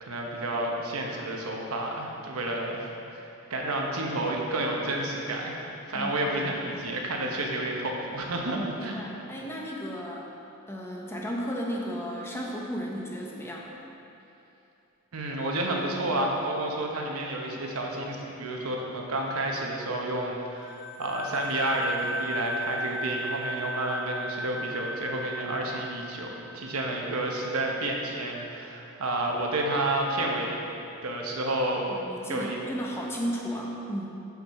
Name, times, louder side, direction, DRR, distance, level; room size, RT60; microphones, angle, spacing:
voice 1, 0.0-5.6 5.9-9.0 15.1-30.6 31.0-31.9 32.2-32.6, right 1 dB, 80° right, 0 dB, 1.0 m, -30 dB
voice 2, 8.5-10.3 10.7-13.7 31.9-34.1, equal, 10° left, -2 dB, 0.7 m, -34 dB
sound 1, 20.6-27.1, equal, 45° left, 0.9 m, -35 dB
7.5 x 5.9 x 4.2 m, 2.8 s
head